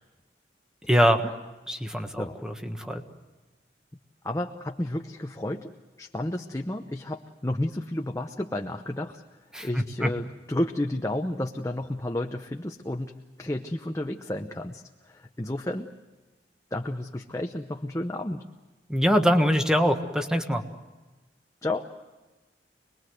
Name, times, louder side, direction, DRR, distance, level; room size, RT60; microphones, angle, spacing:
voice 1, 0.9-1.2 1.7-3.0 9.5-9.7 10.0-10.1 18.9-20.6, equal, 5° right, 6 dB, 1.4 m, -23 dB
voice 2, 4.2-5.7 6.0-16.0 16.7-18.5 21.6-21.9, left 1 dB, 15° left, 3 dB, 0.8 m, -32 dB
26.5 x 21.0 x 7.8 m, 1.2 s
head